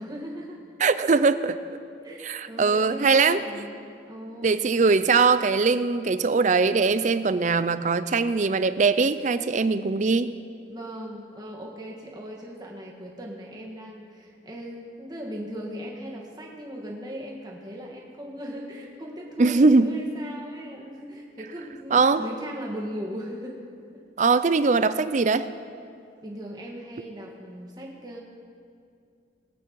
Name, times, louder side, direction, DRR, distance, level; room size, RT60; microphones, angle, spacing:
voice 1, 0.0-1.1 2.0-4.6 10.7-23.7 23.9-24.0 26.2-28.2, equal, 20° right, -2 dB, 1.8 m, -38 dB
voice 2, 0.8-1.6 2.2-3.4 4.4-10.3 19.4-19.9 21.9-22.3 24.2-25.5, right 4 dB, 40° right, 13 dB, 0.4 m, -21 dB
21.5 x 8.4 x 4.7 m, 2.4 s
head